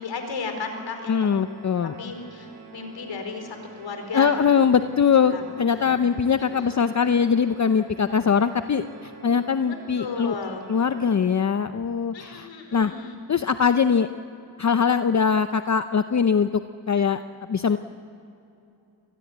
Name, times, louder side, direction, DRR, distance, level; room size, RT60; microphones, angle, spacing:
voice 1, 0.0-1.5 2.0-4.6 5.2-5.4 5.7-6.0 6.3-6.8 10.0-10.6 12.1-13.2, left 4 dB, 75° left, 5 dB, 4.6 m, -35 dB
Organ, 1.0-11.7, right 3 dB, 45° right, 5.7 m, -46 dB
voice 2, 1.1-2.0 4.1-10.4 10.7-12.9 13.3-14.1 14.6-16.5 16.9-17.2 17.5-17.8, left 6 dB, 40° left, 10 dB, 0.7 m, -22 dB
26.5 x 20.5 x 8.2 m, 2.7 s
cardioid pair, 85°, 45 cm